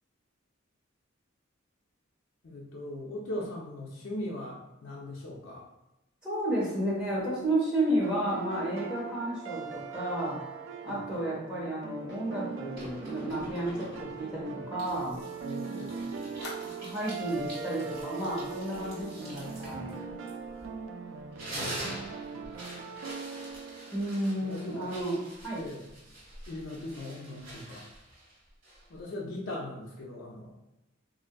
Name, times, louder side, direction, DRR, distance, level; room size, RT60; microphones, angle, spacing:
voice 1, 2.4-5.7 10.8-11.0 15.4-16.1 21.5-22.0 22.3-22.8 24.4-25.0 25.5-26.1 26.5-27.9 28.9-30.6, left 1 dB, 80° left, -4 dB, 0.5 m, -40 dB
voice 2, 6.2-10.4 10.8-15.2 16.6-19.9 23.9-25.2 25.4-25.6, right 1 dB, 5° right, -8 dB, 1.0 m, -32 dB
sound 1, 8.0-24.9, right 5 dB, 70° right, 0.3 m, -41 dB
Fire, 12.1-15.5 15.8-15.9 16.4-17.4 17.8-18.0 18.3-18.5, left 1 dB, 55° left, 0.9 m, -51 dB
sound 2, 12.7-14.3 14.8-20.8 21.2-29.0, right 1 dB, 50° right, 1.3 m, -45 dB
3.7 x 2.5 x 2.2 m, 0.91 s
head